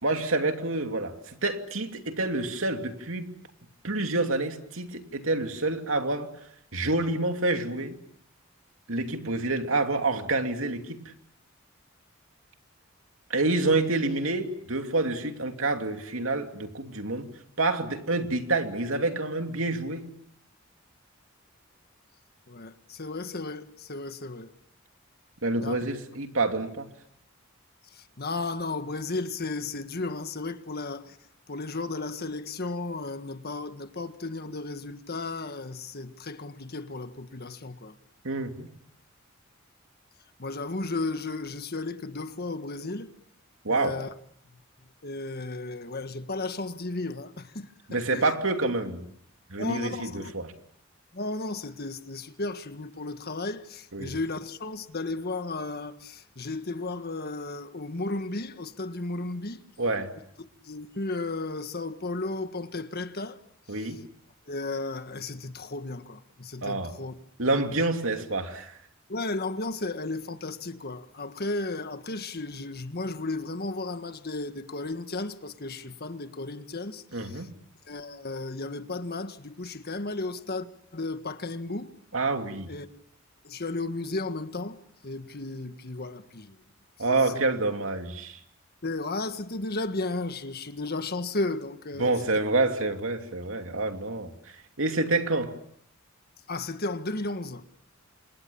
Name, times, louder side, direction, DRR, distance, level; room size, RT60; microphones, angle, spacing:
voice 1, 0.0-3.3 3.8-6.3 6.7-8.0 8.9-11.1 13.3-17.3 17.6-20.1 25.4-26.9 38.2-38.7 43.6-44.0 47.9-49.1 49.5-50.5 53.9-54.1 59.8-60.1 63.7-64.0 66.6-66.9 67.4-68.8 77.1-77.5 82.1-82.7 87.0-88.4 92.0-94.3 94.8-95.5, right 2 dB, 70° right, 2.9 m, -28 dB
voice 2, 22.5-24.5 25.6-25.8 27.9-31.2 31.5-37.9 40.4-43.1 43.7-44.1 45.0-48.3 49.6-50.3 51.1-59.6 60.6-63.4 63.8-63.9 64.5-67.1 67.7-67.8 69.1-77.5 77.9-80.7 80.9-81.9 82.7-82.9 83.4-84.8 85.0-86.6 87.0-87.4 88.8-92.2 96.5-97.6, left 2 dB, 50° left, 1.7 m, -34 dB
30.0 x 27.5 x 7.2 m
head